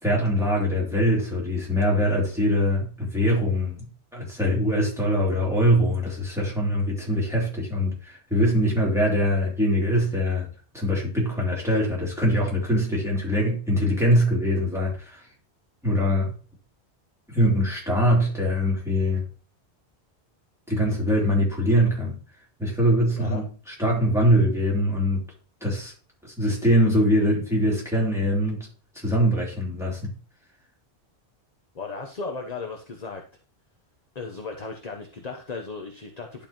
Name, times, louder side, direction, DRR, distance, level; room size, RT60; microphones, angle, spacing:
voice 1, 0.0-3.8 4.1-10.5 10.7-15.2 15.8-16.3 17.3-19.2 20.7-22.1 22.6-25.2 25.6-25.9 26.2-28.6 29.0-30.1, equal, ahead, -4 dB, 3.4 m, -23 dB
voice 2, 23.1-23.4 31.7-33.2 34.1-36.5, left 4 dB, 40° left, 4 dB, 0.9 m, -36 dB
11.0 x 5.2 x 2.9 m, 0.39 s
omnidirectional pair, 1.1 m